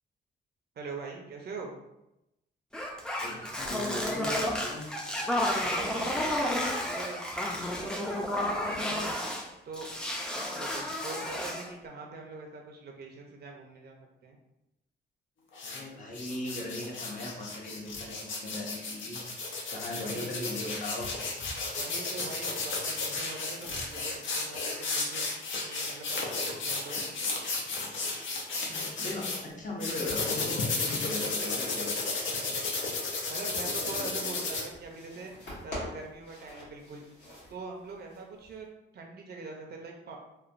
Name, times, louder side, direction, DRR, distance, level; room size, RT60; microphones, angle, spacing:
voice 1, 0.8-1.8 5.5-9.1 9.6-9.9 10.4-14.4 20.0-20.3 21.8-27.0 33.3-35.3 35.6-37.0 37.5-38.7 38.9-40.2, right 3 dB, 60° right, 1 dB, 0.5 m, -43 dB
sound 1, 2.7-9.5 9.7-11.7, left 1 dB, 5° left, 0.4 m, -31 dB
voice 2, 3.2-4.9 15.6-19.2 19.7-21.1 28.6-31.9, left 1 dB, 45° left, -2 dB, 0.7 m, -39 dB
sound 2, 15.5-15.8 16.1-29.4 29.8-34.6, left 3 dB, 85° left, 0.6 m, -33 dB
sound 3, 34.3-38.7, left 1 dB, 65° left, 1.2 m, -46 dB
3.0 x 2.1 x 2.5 m, 0.89 s
cardioid pair, 100°, 19 cm